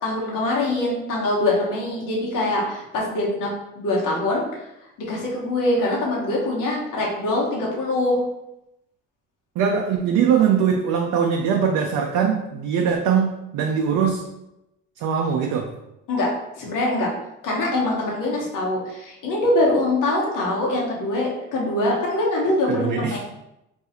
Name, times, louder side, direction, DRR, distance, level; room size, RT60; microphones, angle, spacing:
voice 1, 0.0-3.5 3.7-4.6 5.1-8.2 16.1-16.3 16.6-17.1 17.4-23.2, left 2 dB, 70° left, -3 dB, 1.2 m, -23 dB
voice 2, 9.6-14.3 15.0-15.7 22.7-23.2, right 7 dB, 70° right, 2 dB, 0.5 m, -21 dB
2.6 x 2.4 x 4.1 m, 0.89 s
supercardioid pair, 60°, 32 cm